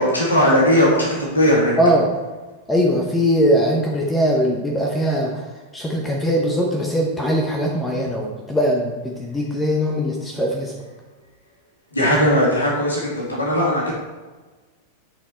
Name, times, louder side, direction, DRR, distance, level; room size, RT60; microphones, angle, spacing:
voice 1, 0.0-1.8 11.9-13.9, equal, 80° left, -4 dB, 2.1 m, -18 dB
voice 2, 2.7-5.4 5.7-10.8, equal, 10° left, 0 dB, 0.9 m, -20 dB
9.0 x 4.4 x 4.4 m, 1.3 s
figure-of-eight pair, 90°, 0 cm